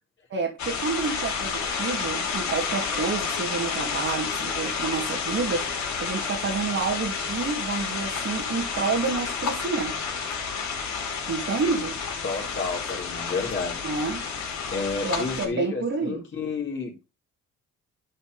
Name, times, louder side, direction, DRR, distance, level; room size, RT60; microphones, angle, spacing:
voice 1, 0.3-5.7 6.0-10.1 11.3-12.0 13.8-14.2 15.0-16.2, right 4 dB, 45° right, 2.2 m, -29 dB
sound 1, 0.6-15.5, left 6 dB, 65° left, 3.1 m, -30 dB
voice 2, 12.2-13.8 14.7-16.9, left 4 dB, 40° left, 3.7 m, -31 dB
11.5 x 4.4 x 4.0 m
cardioid pair, 90°, 30 cm